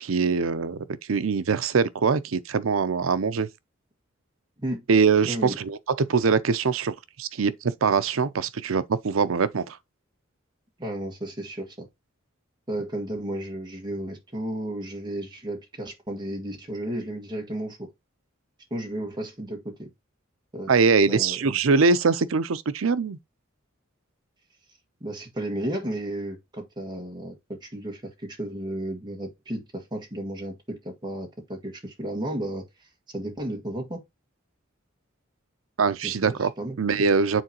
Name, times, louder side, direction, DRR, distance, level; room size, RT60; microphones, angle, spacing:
voice 1, 0.0-3.5 4.9-9.8 20.7-23.2 35.8-36.5 36.8-37.4, right 5 dB, 90° right, 0.6 m, -23 dB
voice 2, 5.2-5.6 10.8-11.9 12.7-17.9 18.7-19.9 20.5-20.7 21.1-21.5 25.0-32.6 33.1-34.0 36.0-36.8, right 1 dB, 20° right, 1.6 m, -33 dB
9.1 x 3.9 x 2.9 m
head